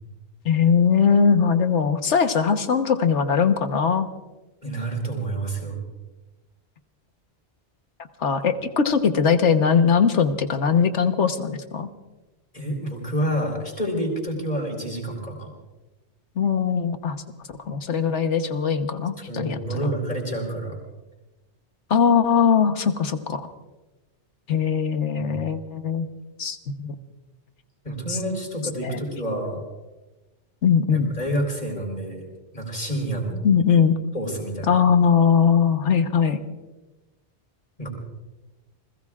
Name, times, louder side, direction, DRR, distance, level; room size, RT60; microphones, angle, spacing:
voice 1, 0.4-4.1 8.2-11.9 16.4-17.2 17.7-19.6 21.9-23.5 24.5-26.1 26.4-27.0 28.1-28.2 28.8-29.0 30.6-31.1 33.4-34.0 34.7-36.4, left 6 dB, 90° left, 7 dB, 1.4 m, -20 dB
voice 2, 4.6-5.8 12.5-15.5 19.3-20.8 25.2-25.4 27.8-29.6 30.9-32.3 32.5-33.4 34.1-34.9 37.8-37.9, right 1 dB, 40° left, 1 dB, 4.2 m, -28 dB
29.0 x 20.5 x 2.4 m, 1.1 s
omnidirectional pair, 1.2 m